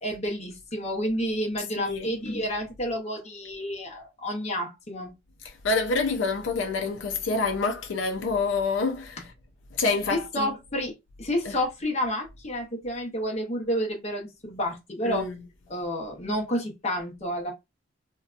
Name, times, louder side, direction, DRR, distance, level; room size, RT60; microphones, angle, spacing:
voice 1, 0.0-5.1 9.2-9.3 10.1-10.9 11.2-15.2 15.7-17.5, equal, 35° left, 0.8 m, -30 dB
voice 2, 1.8-2.1 5.4-9.3 9.7-10.5 15.0-15.5, left 4 dB, 85° left, 0.4 m, -27 dB
2.6 x 2.2 x 2.4 m
head